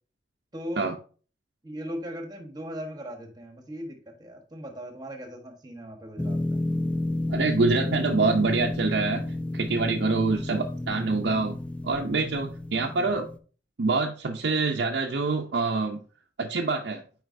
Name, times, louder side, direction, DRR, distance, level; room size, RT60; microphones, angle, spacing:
voice 1, 0.5-0.9 1.6-6.6 12.8-13.2, equal, 25° right, 4 dB, 1.2 m, -39 dB
sound 1, 6.2-13.4, left 1 dB, 5° left, 0.4 m, -31 dB
voice 2, 7.3-9.2 9.5-11.6 11.8-13.3 13.8-16.0 16.4-17.0, right 3 dB, 70° right, 1 dB, 0.6 m, -25 dB
7.8 x 4.8 x 2.6 m, 0.39 s
head